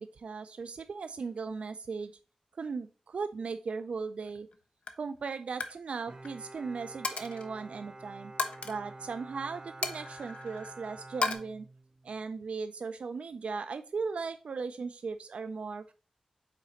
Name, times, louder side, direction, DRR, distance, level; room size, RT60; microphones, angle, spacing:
voice 1, 0.0-2.1 2.6-4.5 5.0-8.3 8.6-11.7 12.0-15.9, right 4 dB, 75° right, 9 dB, 0.3 m, -37 dB
Coin (dropping), 4.3-4.6 4.8-5.1 5.4-5.8 6.1-6.3 7.0-7.5 8.4-8.7 9.8-10.7 11.2-11.3, left 4 dB, 80° left, 0.6 m, -34 dB
Bowed string instrument, 6.1-12.2, right 2 dB, 45° right, 0.8 m, -48 dB
5.7 x 4.0 x 4.1 m, 0.37 s
wide cardioid pair, 115°, 2 cm